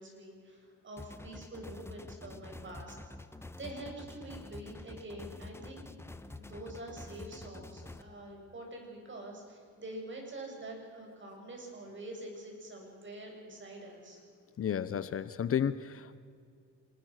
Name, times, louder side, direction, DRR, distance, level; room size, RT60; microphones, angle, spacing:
voice 1, 0.0-3.3 3.6-5.9 6.3-14.2, right 1 dB, 40° right, 1 dB, 7.9 m, -46 dB
sound 1, 1.0-8.0, left 2 dB, 10° left, 1.2 m, -47 dB
voice 2, 14.6-16.2, left 8 dB, 50° left, 14 dB, 0.9 m, -32 dB
26.5 x 20.0 x 6.6 m, 2.3 s
cardioid pair, 90°, 30 cm